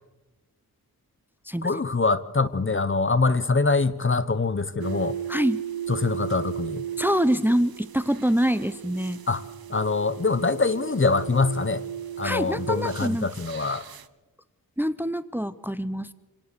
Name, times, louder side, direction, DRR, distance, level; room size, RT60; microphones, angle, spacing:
voice 1, 1.6-5.2 5.9-6.8 9.3-9.4 9.7-11.8 12.2-13.9, left 3 dB, 35° left, 15 dB, 0.9 m, -24 dB
sound 1, 4.8-14.1, right 10 dB, 75° right, 0.9 m, -36 dB
voice 2, 5.3-5.6 7.0-9.2 12.2-13.3 14.8-16.1, equal, 5° right, 15 dB, 0.8 m, -25 dB
26.5 x 17.5 x 6.9 m, 1.1 s
wide cardioid pair, 80°, 36 cm